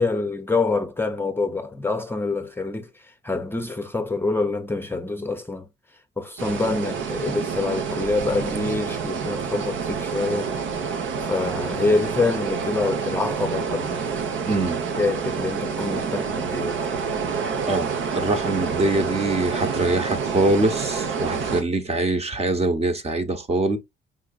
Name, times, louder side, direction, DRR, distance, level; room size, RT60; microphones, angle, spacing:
voice 1, 0.0-2.9 3.2-5.7 6.2-10.5 11.2-14.0 14.9-16.8, left 3 dB, 10° left, 0.7 m, -26 dB
sound 1, 6.4-21.6, right 6 dB, 75° right, 1.0 m, -28 dB
voice 2, 14.5-14.8 17.7-23.8, right 2 dB, 30° right, 1.0 m, -23 dB
4.8 x 3.8 x 2.4 m
cardioid pair, 90°, 20 cm